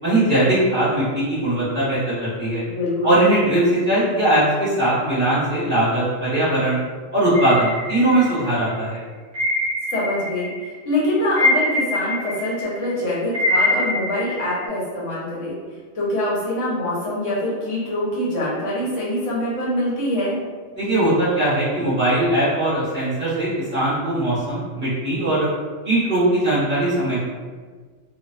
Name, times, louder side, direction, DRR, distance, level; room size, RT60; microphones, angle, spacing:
voice 1, 0.0-2.6 3.0-6.8 7.1-9.0 20.7-25.5 25.8-27.2, right 1 dB, 10° right, -12 dB, 1.1 m, -20 dB
voice 2, 2.6-3.2 9.9-15.5 15.9-20.4, left 1 dB, 70° left, -7 dB, 1.1 m, -24 dB
sound 1, 7.3-8.6 9.3-10.6 10.9-14.7, left 1 dB, 60° right, 0.6 m, -24 dB
2.4 x 2.3 x 2.4 m, 1.5 s
omnidirectional pair, 1.4 m